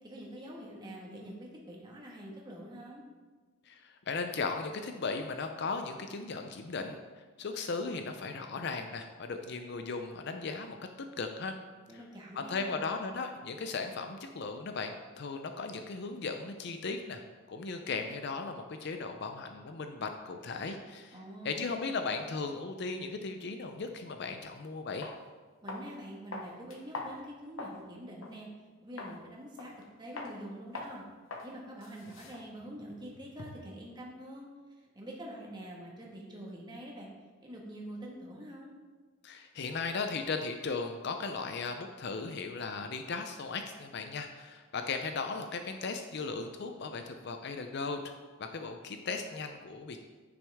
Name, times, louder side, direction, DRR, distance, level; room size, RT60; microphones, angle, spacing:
voice 1, 0.0-3.0 11.9-12.8 21.1-21.7 25.6-28.5 28.8-29.7 30.0-31.0 31.4-34.5 34.9-37.1 37.4-38.7, right 1 dB, 20° right, -3 dB, 1.5 m, -45 dB
voice 2, 3.7-10.8 11.2-11.6 11.9-12.0 12.3-17.2 17.5-21.1 21.4-25.1 39.2-48.1 48.4-50.0, left 4 dB, 55° left, 6 dB, 0.5 m, -37 dB
sound 1, 25.0-25.2 25.7-26.0 26.3-27.8 28.2-28.4 29.0-29.2 29.6-29.9 30.2-30.4 30.7-31.0 31.3-31.5 31.8-33.7, left 2 dB, 75° left, 1.0 m, -43 dB
9.8 x 6.1 x 3.5 m, 1.4 s
head